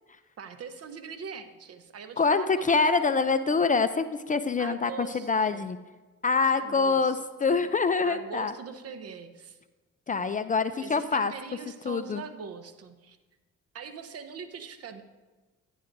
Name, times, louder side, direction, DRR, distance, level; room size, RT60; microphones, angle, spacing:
voice 1, 0.4-3.1 4.6-5.7 6.5-7.2 7.5-7.6 8.0-9.6 10.8-13.2 13.7-15.0, right 6 dB, 55° right, 8 dB, 0.8 m, -42 dB
voice 2, 2.2-5.8 6.2-8.5 10.1-11.3 11.9-12.2, left 4 dB, 25° left, 11 dB, 0.4 m, -25 dB
11.0 x 10.5 x 2.6 m, 1.2 s
cardioid pair, 90°, 30 cm